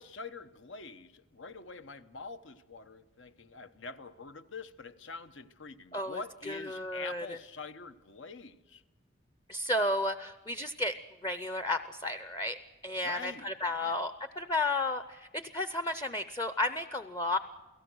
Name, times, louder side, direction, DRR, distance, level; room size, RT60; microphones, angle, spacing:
voice 1, 0.0-8.8 13.0-14.0, left 4 dB, 80° left, 11 dB, 1.1 m, -45 dB
voice 2, 6.5-7.3 9.5-11.0 11.2-17.4, left 2 dB, 20° left, 11 dB, 0.6 m, -33 dB
29.0 x 17.5 x 6.3 m, 1.1 s
head